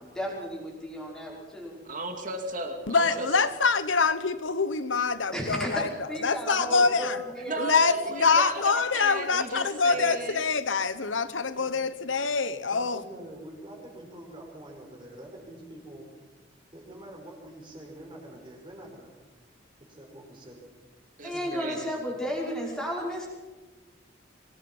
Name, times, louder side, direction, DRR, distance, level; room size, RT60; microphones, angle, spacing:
voice 1, 0.0-1.8 5.3-8.0 21.2-23.3, equal, 5° left, -3 dB, 5.7 m, -34 dB
voice 2, 1.8-3.5 7.5-10.4 21.2-21.9, right 2 dB, 45° right, 4 dB, 2.8 m, -35 dB
voice 3, 2.9-5.9 6.2-7.2 7.6-13.0, left 4 dB, 80° left, 13 dB, 1.2 m, -25 dB
voice 4, 7.5-7.8 9.9-10.2 11.4-11.8 12.0-12.1 12.7-16.1 16.7-19.2 19.9-20.6 21.3-21.7, right 1 dB, 25° right, 0 dB, 5.7 m, -46 dB
24.0 x 19.5 x 5.7 m, 1.2 s
head